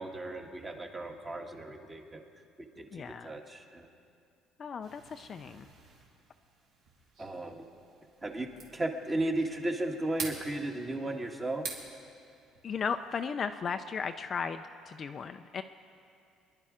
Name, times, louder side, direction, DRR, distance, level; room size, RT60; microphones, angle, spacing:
voice 1, 0.0-2.2 2.6-3.9 7.2-7.7 8.2-11.7, right 1 dB, 15° right, 3 dB, 1.3 m, -35 dB
voice 2, 2.9-3.4 4.6-5.7 12.6-15.6, left 6 dB, 35° left, 8 dB, 0.4 m, -36 dB
sound 1, 4.8-13.2, right 4 dB, 65° right, 2.6 m, -47 dB
25.0 x 11.0 x 4.9 m, 2.4 s
cardioid pair, 145°, 0 cm